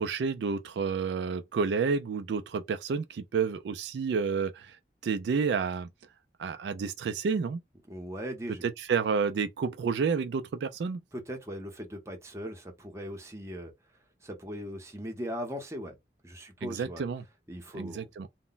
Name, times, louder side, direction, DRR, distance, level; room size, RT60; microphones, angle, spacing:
voice 1, 0.0-4.8 5.0-5.9 6.4-7.6 8.6-11.0 16.6-17.2 17.7-18.3, right 5 dB, 70° right, 0.3 m, -30 dB
voice 2, 7.9-8.6 11.1-13.7 14.2-16.0 16.2-17.1 17.5-18.1, equal, 15° right, 0.7 m, -39 dB
2.1 x 2.0 x 3.8 m
head